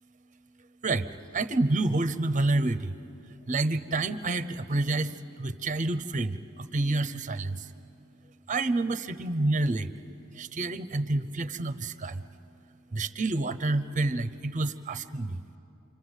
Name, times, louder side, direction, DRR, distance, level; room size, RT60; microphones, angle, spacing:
voice 1, 0.8-3.0 3.5-7.7 8.5-9.9 10.3-12.2 12.9-15.4, right 2 dB, 35° right, 13 dB, 0.8 m, -28 dB
28.5 x 25.0 x 8.2 m, 2.9 s
head